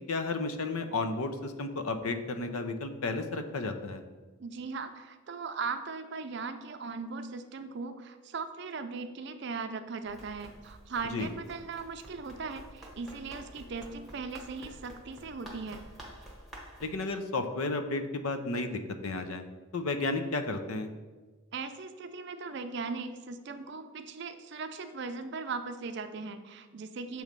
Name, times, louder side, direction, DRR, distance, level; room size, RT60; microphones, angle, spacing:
voice 1, 0.1-4.0 11.1-11.3 16.8-19.4 19.7-20.9, left 3 dB, 85° left, 8 dB, 0.6 m, -33 dB
voice 2, 4.4-15.8 21.5-27.2, right 4 dB, 55° right, 8 dB, 0.4 m, -38 dB
Run, 10.1-17.0, right 1 dB, ahead, 0.9 m, -50 dB
7.0 x 3.1 x 5.2 m, 1.3 s
head